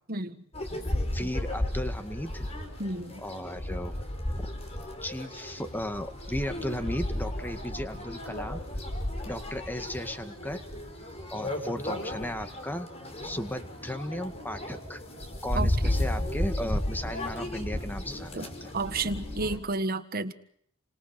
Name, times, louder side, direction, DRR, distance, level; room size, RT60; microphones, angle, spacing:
sound 1, 0.5-19.6, left 1 dB, 30° left, 5.2 m, -34 dB
voice 1, 1.1-2.5 3.2-4.0 4.4-4.5 5.0-8.6 9.2-10.6 11.3-12.9 13.2-15.0 15.4-18.7, left 1 dB, 10° left, 8 dB, 2.0 m, -35 dB
voice 2, 2.8-3.2 15.5-15.7 18.3-18.5 18.7-20.3, right 3 dB, 45° right, 9 dB, 1.6 m, -31 dB
29.0 x 26.5 x 6.0 m, 0.67 s
head